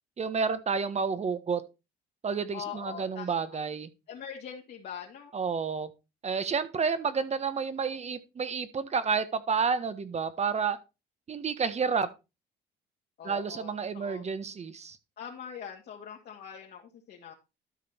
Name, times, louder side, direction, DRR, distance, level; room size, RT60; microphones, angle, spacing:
voice 1, 0.2-1.6 2.2-3.9 5.3-5.9 6.2-10.8 11.3-12.1 13.2-15.0, right 5 dB, 35° right, 13 dB, 1.4 m, -30 dB
voice 2, 2.5-3.6 4.1-5.3 13.2-14.2 15.2-17.3, left 8 dB, 60° left, -1 dB, 2.2 m, -43 dB
12.5 x 5.2 x 4.4 m, 0.27 s
cardioid pair, 90°, 18 cm